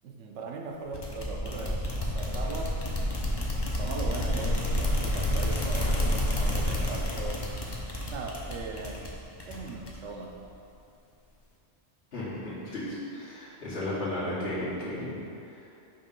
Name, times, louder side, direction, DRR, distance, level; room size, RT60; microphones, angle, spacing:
voice 1, 0.0-2.8 3.8-7.5 8.1-9.0 9.5-10.3, right 3 dB, 80° right, 0 dB, 1.0 m, -39 dB
sound 1, 0.9-10.2, left 1 dB, 30° left, 0.6 m, -30 dB
sound 2, 2.4-3.2 3.4-4.4 5.5-6.2, right 1 dB, 35° right, 1.5 m, -45 dB
voice 2, 12.1-15.6, left 1 dB, 60° left, -9 dB, 1.6 m, -34 dB
5.8 x 3.0 x 5.3 m, 2.6 s
omnidirectional pair, 1.2 m